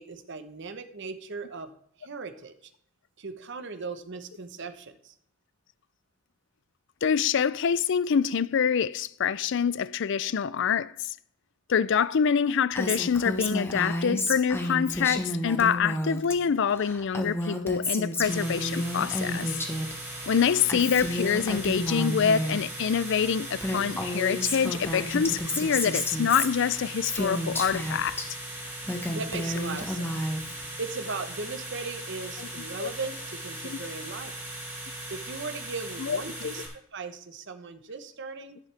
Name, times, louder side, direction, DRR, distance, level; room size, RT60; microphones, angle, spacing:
voice 1, 0.0-1.7 2.0-2.5 3.2-5.1 29.1-30.1 30.8-34.4 35.1-38.6, right 4 dB, 60° right, 1.0 m, -38 dB
voice 2, 7.0-11.1 11.7-19.5 20.3-28.2 32.4-32.5 32.8-32.9 33.7-33.8 36.0-36.5, left 7 dB, 60° left, 0.4 m, -26 dB
Female speech woman speaking, 12.8-16.4 16.6-19.9 20.2-22.6 23.2-23.3 23.6-28.3 28.7-30.6, left 1 dB, 10° left, 1.2 m, -31 dB
sound 1, 18.2-36.7, right 1 dB, 15° right, 4.7 m, -39 dB
11.0 x 10.5 x 3.4 m
head